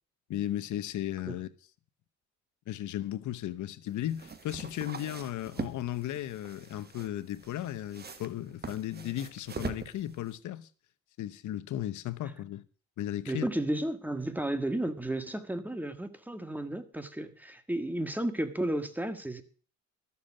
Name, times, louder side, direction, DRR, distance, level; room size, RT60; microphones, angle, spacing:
voice 1, 0.3-1.5 2.7-10.7 11.2-12.6 13.0-13.5, left 12 dB, 75° left, 1.0 m, -35 dB
sound 1, 3.9-10.4, right 5 dB, 35° right, 1.4 m, -43 dB
voice 2, 13.3-19.4, right 1 dB, 5° right, 1.6 m, -33 dB
13.0 x 7.3 x 7.4 m
cardioid pair, 90°, 30 cm